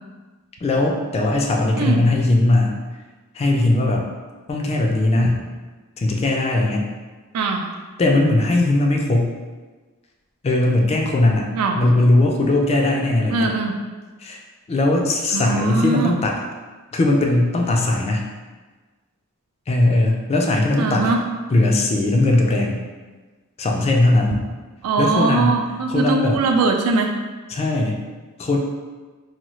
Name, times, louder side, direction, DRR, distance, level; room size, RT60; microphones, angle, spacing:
voice 1, 0.6-2.8 3.3-4.1 4.5-5.4 6.0-6.9 8.0-9.3 10.4-11.5 11.7-13.5 14.2-14.4 14.7-16.4 16.9-18.3 19.7-21.1 21.5-22.8 23.6-24.4 25.0-25.6 25.9-26.4 27.5-28.0 28.4-28.6, left 2 dB, 30° left, 0 dB, 0.3 m, -19 dB
voice 2, 7.3-7.7 11.5-11.8 13.3-13.7 15.3-16.1 20.8-21.2 24.8-27.1, right 3 dB, 80° right, 3 dB, 0.4 m, -21 dB
2.8 x 2.2 x 3.0 m, 1.3 s
head